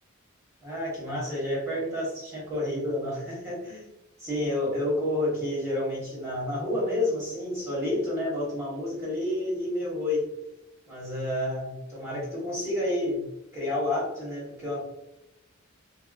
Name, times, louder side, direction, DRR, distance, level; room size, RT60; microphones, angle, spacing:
voice 1, 0.6-3.8 4.2-10.3 10.9-14.8, left 1 dB, 15° right, -7 dB, 1.2 m, -30 dB
2.7 x 2.1 x 2.3 m, 0.89 s
head